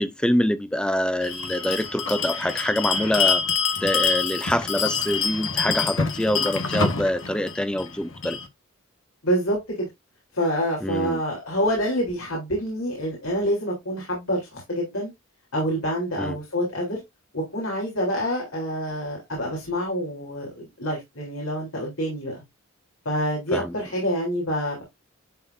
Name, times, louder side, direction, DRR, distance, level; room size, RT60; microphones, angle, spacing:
voice 1, 0.0-8.4 10.8-11.2 16.2-16.4 23.5-23.7, left 1 dB, 5° left, 0.6 m, -25 dB
Bell, 1.2-8.5, left 5 dB, 65° left, 1.5 m, -26 dB
voice 2, 9.2-9.9 10.3-15.1 15.5-17.0 17.3-22.4 23.1-24.8, equal, 85° left, 3.7 m, -27 dB
11.0 x 4.2 x 2.7 m
head